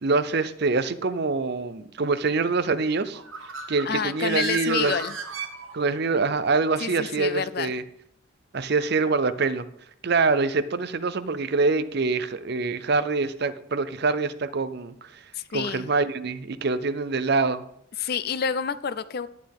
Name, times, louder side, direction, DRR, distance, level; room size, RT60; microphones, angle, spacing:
voice 1, 0.0-3.2 3.7-4.9 5.7-7.8 8.5-9.6 10.0-15.2 15.5-17.6, right 4 dB, 50° right, 13 dB, 0.6 m, -25 dB
Bird, 3.1-6.1, right 5 dB, 70° right, 1.2 m, -34 dB
voice 2, 3.8-5.2 6.8-7.7 15.3-15.9 18.0-19.3, left 7 dB, 50° left, 15 dB, 0.4 m, -28 dB
11.0 x 9.4 x 3.6 m, 0.71 s
head